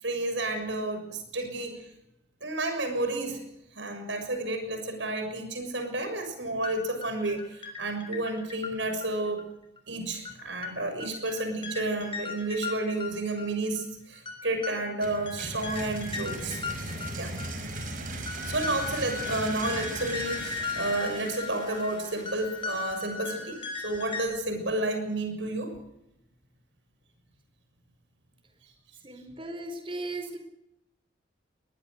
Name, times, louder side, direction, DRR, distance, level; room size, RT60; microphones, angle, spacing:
voice 1, 0.0-1.8 2.4-3.4 3.7-9.4 9.9-16.6 17.2-17.4 18.4-25.7, right 2 dB, 75° right, 6 dB, 6.8 m, -31 dB
sound 1, 6.6-6.7 7.0-9.4 9.8-9.9 10.3-10.4 10.6-10.7 11.0-13.5 13.8-13.9 14.3-17.5 17.8-17.9 18.3-24.2, left 5 dB, 25° left, 5.4 m, -37 dB
sound 2, 15.0-22.8, right 2 dB, 45° right, 5.4 m, -38 dB
voice 2, 29.0-30.4, right 2 dB, 30° right, 6 dB, 4.5 m, -37 dB
24.0 x 20.0 x 6.7 m, 0.81 s
head